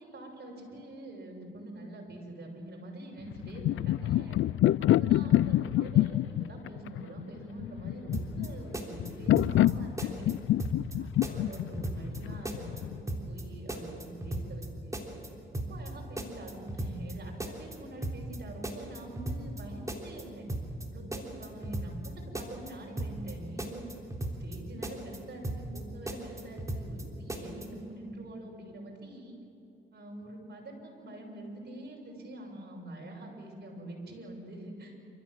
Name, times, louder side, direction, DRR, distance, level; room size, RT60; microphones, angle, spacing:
voice 1, 0.0-4.4 4.8-10.3 11.0-15.0 15.5-20.5 20.9-23.9 24.4-29.4 29.9-34.9, right 1 dB, 55° right, 0 dB, 6.8 m, -45 dB
sound 1, 3.3-13.0, left 14 dB, 75° left, 0.4 m, -27 dB
sound 2, 8.1-8.5 8.7-9.7 10.0-10.3 10.6-11.0 11.2-12.2 12.4-12.8 13.1-13.4 13.7-14.7 14.9-15.3 15.5-15.9 16.2-17.1 17.4-17.8 18.0-18.4 18.6-19.6 19.9-20.2 20.5-20.9 21.1-22.1 22.3-22.7 23.0-23.3 23.6-24.6 24.8-25.2 25.4-25.8 26.1-27.0 27.3-27.7, right 1 dB, 15° right, 3.5 m, -36 dB
27.5 x 14.5 x 7.8 m, 2.9 s
cardioid pair, 65°, 21 cm